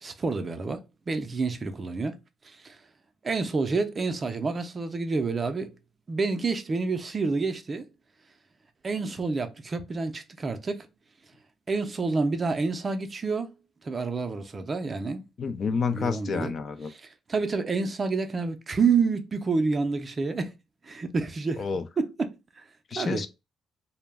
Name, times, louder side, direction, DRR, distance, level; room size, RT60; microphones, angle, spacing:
voice 1, 0.0-2.2 2.4-2.8 3.2-5.7 6.1-7.9 8.8-10.9 11.7-13.5 13.8-15.3 15.9-16.5 16.9-20.5 20.8-21.6 22.0-22.6 22.9-23.2, right 4 dB, 35° right, 0.4 m, -28 dB
voice 2, 15.4-16.9 21.6-21.8 22.9-23.3, left 5 dB, 50° left, 0.3 m, -29 dB
2.2 x 2.0 x 3.3 m
cardioid pair, 90°, 0 cm